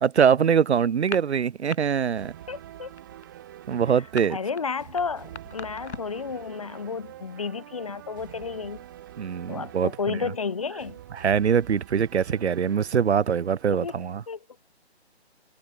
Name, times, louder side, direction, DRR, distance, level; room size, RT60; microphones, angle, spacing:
voice 1, 0.0-2.3 3.7-4.4 9.2-10.2 11.1-14.2, right 7 dB, 75° right, 0.7 m, -23 dB
sound 1, 0.9-1.8 2.1-2.4 2.7-6.2, left 4 dB, 85° left, 2.4 m, -39 dB
sound 2, 2.2-14.1, right 12 dB, 20° right, 2.4 m, -46 dB
voice 2, 2.5-2.9 4.3-8.8 9.5-11.0 13.7-13.9 14.3-14.4, left 5 dB, 30° left, 0.9 m, -32 dB
hypercardioid pair, 170°, 33 cm